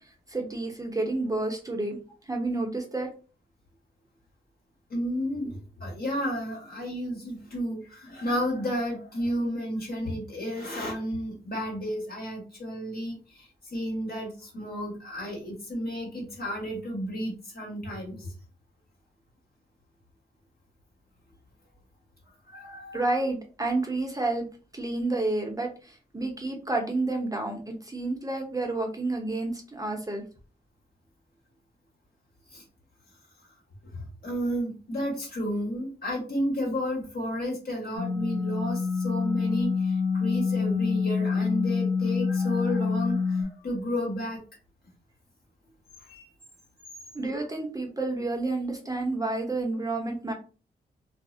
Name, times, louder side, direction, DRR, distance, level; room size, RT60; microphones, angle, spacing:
voice 1, 0.3-2.0 2.3-3.1 22.9-24.5 24.7-30.2 47.1-50.3, right 2 dB, 20° right, 2 dB, 0.8 m, -30 dB
voice 2, 4.9-18.3 22.5-23.0 32.5-32.6 34.2-44.4 46.1-46.3, equal, 55° left, -1 dB, 1.4 m, -32 dB
sound 1, 38.0-43.4, left 5 dB, 80° left, 1.4 m, -26 dB
2.4 x 2.0 x 2.5 m, 0.35 s
supercardioid pair, 45°, 19 cm